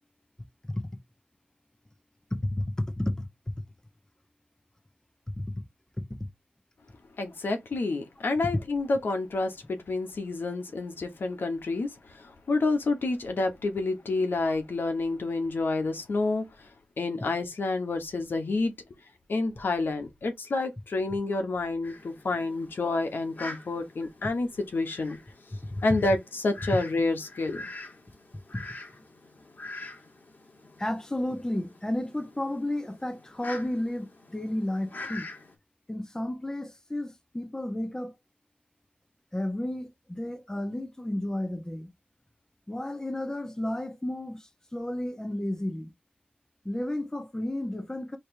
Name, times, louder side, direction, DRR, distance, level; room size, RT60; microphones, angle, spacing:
voice 1, 2.3-3.3 5.4-5.5 25.7-25.8 28.5-28.6 30.8-35.3 35.9-38.1 39.3-41.9 42.7-45.9 46.6-48.2, left 1 dB, 15° left, 1.2 m, -32 dB
voice 2, 7.2-16.4 17.0-18.7 19.3-25.2 25.8-27.6, left 3 dB, 90° left, 1.2 m, -29 dB
Fowl, 21.8-35.5, left 2 dB, 55° left, 1.8 m, -45 dB
4.4 x 3.2 x 3.3 m
wide cardioid pair, 65°, 3 cm